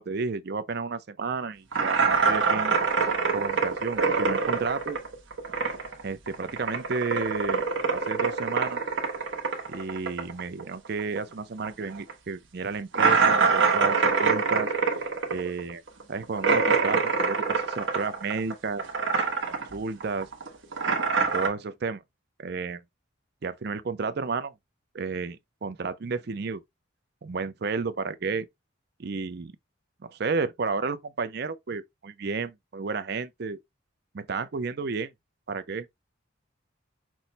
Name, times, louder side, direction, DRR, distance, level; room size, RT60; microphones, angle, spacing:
voice 1, 0.0-2.7 3.3-5.0 6.0-8.8 9.7-14.7 15.0-15.1 15.3-15.8 16.1-18.8 19.7-20.3 21.3-22.0 22.4-22.8 23.4-24.5 24.9-26.6 27.2-28.5 29.0-29.5 30.0-33.6 34.1-35.1 35.5-35.9, right 4 dB, 55° right, 0.5 m, -32 dB
sound 1, 1.7-6.0 6.3-11.3 11.6-11.7 12.1-12.2 12.9-18.5 18.8-19.7 20.0-21.5, right 4 dB, 75° right, 1.2 m, -25 dB
6.1 x 2.0 x 4.0 m
head